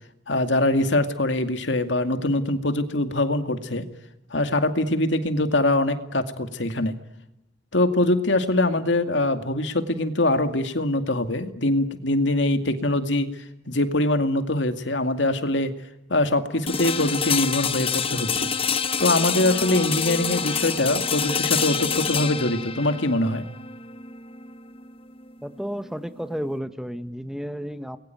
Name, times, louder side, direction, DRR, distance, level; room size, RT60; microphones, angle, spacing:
voice 1, 0.3-3.9 4.3-6.9 7.7-13.3 13.7-15.7 16.1-18.5 19.0-23.4, left 1 dB, 80° left, 7 dB, 2.3 m, -23 dB
sound 1, 16.7-26.6, left 6 dB, 30° left, 1.0 m, -27 dB
voice 2, 25.4-28.0, equal, 5° right, 10 dB, 1.3 m, -32 dB
29.5 x 22.0 x 9.2 m, 0.92 s
head